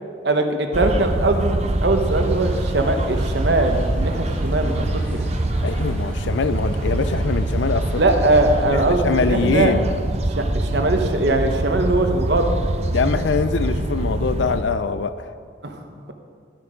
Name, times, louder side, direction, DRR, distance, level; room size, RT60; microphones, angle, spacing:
voice 1, 0.2-5.2 8.0-9.7 10.4-12.5 15.6-15.8, right 2 dB, 60° right, 5 dB, 1.0 m, -21 dB
sound 1, 0.7-14.6, right 1 dB, 35° right, 0.6 m, -24 dB
sound 2, 1.9-8.6, equal, 5° left, 1.8 m, -40 dB
voice 2, 5.6-8.0 8.7-9.9 12.9-15.3, left 5 dB, 75° left, 12 dB, 0.4 m, -23 dB
12.5 x 8.1 x 5.1 m, 2.2 s
head